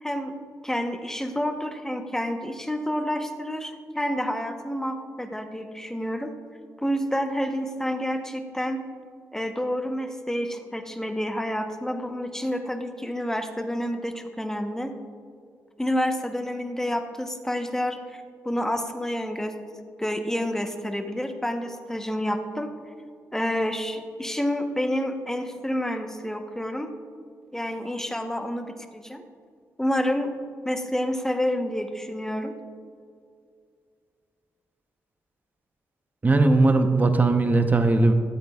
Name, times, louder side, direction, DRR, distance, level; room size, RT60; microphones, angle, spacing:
voice 1, 0.0-0.3 0.6-6.3 6.8-8.8 9.3-14.9 15.8-19.5 20.0-22.7 23.3-26.9 27.5-29.2 29.8-30.3 30.6-32.5, equal, 5° left, 6 dB, 0.9 m, -29 dB
voice 2, 36.2-38.1, right 2 dB, 25° right, 7 dB, 0.8 m, -19 dB
13.0 x 8.0 x 2.3 m, 2.2 s
cardioid pair, 60°, 6 cm